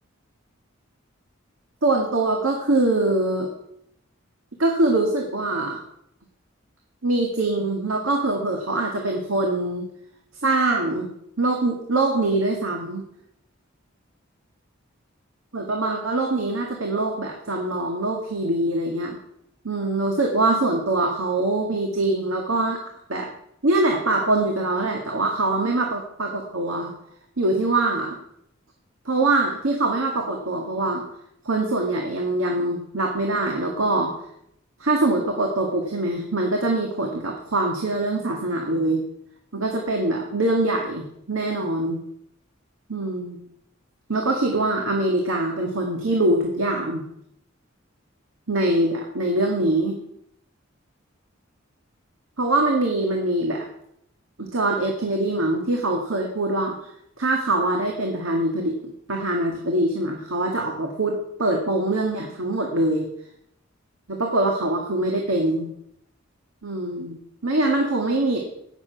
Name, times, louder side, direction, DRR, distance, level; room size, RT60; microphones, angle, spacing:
voice 1, 1.8-3.5 4.6-5.8 7.0-9.9 10.4-11.1 11.4-13.0 15.5-19.2 19.6-22.8 23.1-23.3 23.6-26.9 27.4-28.2 29.1-31.0 31.4-34.1 34.8-39.0 39.5-42.0 42.9-43.4 44.1-47.0 48.5-50.0 52.4-53.7 54.4-56.8 57.2-58.8 59.1-63.1 64.1-65.7 66.6-68.4, right 2 dB, 90° right, 1 dB, 1.9 m, -23 dB
17.5 x 7.3 x 5.8 m, 0.75 s
head